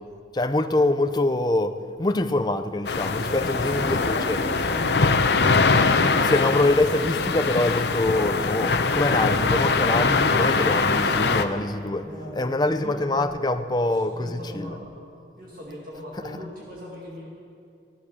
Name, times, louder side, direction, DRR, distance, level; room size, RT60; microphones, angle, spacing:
voice 1, 0.3-4.4 6.2-12.1 12.3-14.8, left 2 dB, 25° left, 8 dB, 0.6 m, -24 dB
sound 1, 2.9-11.5, left 4 dB, 70° left, 0.7 m, -22 dB
voice 2, 3.2-4.9 10.9-11.0 12.0-13.3 13.9-15.1 15.4-17.3, equal, 50° right, -3 dB, 2.0 m, -39 dB
16.0 x 11.5 x 6.7 m, 2.4 s
head